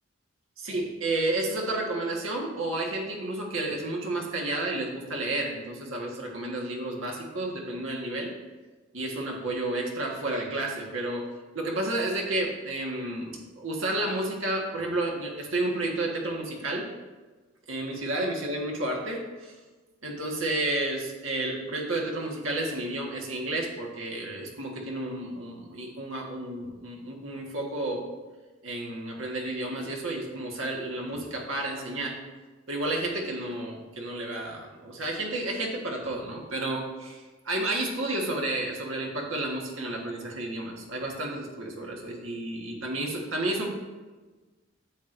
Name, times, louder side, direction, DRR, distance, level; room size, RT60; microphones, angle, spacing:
voice 1, 0.6-8.3 8.9-11.3 11.5-16.9 17.7-19.5 20.0-28.1 28.6-32.2 32.7-43.7, right 2 dB, 85° right, 0 dB, 1.5 m, -31 dB
10.0 x 7.6 x 2.6 m, 1.3 s
head